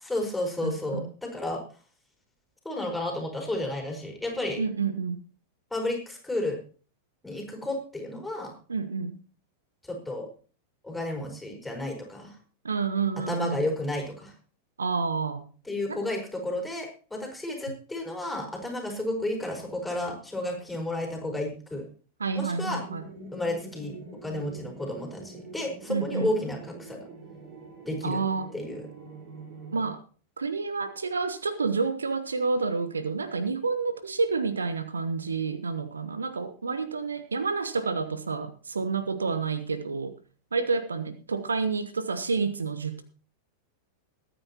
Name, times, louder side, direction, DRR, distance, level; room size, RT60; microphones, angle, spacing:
voice 1, 0.1-1.6 2.6-4.6 5.7-6.6 7.2-8.5 9.9-10.3 10.8-12.3 13.2-14.3 15.6-21.9 22.3-22.8 23.3-23.9 24.2-27.1 27.9-28.2 28.5-28.9, left 1 dB, 5° left, 2 dB, 5.0 m, -32 dB
voice 2, 0.6-1.1 4.6-5.2 8.7-9.1 12.6-13.6 14.8-15.5 15.9-16.0 22.2-23.0 25.9-26.3 28.0-28.5 29.7-30.0 30.4-40.1 40.5-43.0, right 4 dB, 75° right, 12 dB, 1.1 m, -29 dB
sound 1, 22.6-29.9, right 3 dB, 45° right, 4.3 m, -45 dB
21.5 x 9.4 x 3.0 m, 0.38 s
figure-of-eight pair, 90°, 0 cm